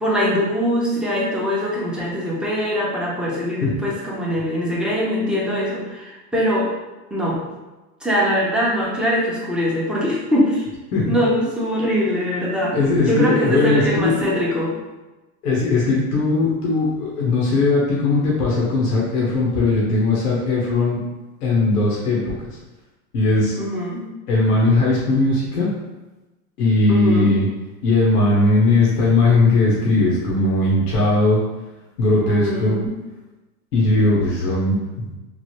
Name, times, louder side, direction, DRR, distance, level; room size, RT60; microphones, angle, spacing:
voice 1, 0.0-6.7 7.1-7.4 8.0-10.6 11.1-12.8 13.0-14.8 23.6-24.0 26.9-27.3 32.2-32.9, equal, ahead, -5 dB, 0.5 m, -22 dB
voice 2, 12.7-14.1 15.4-21.0 21.4-22.3 23.1-23.6 24.3-25.7 26.6-27.5 27.8-31.4 32.0-32.8 33.7-35.1, left 2 dB, 85° left, -4 dB, 0.9 m, -18 dB
3.2 x 2.0 x 2.9 m, 1.1 s
hypercardioid pair, 105°, 45 cm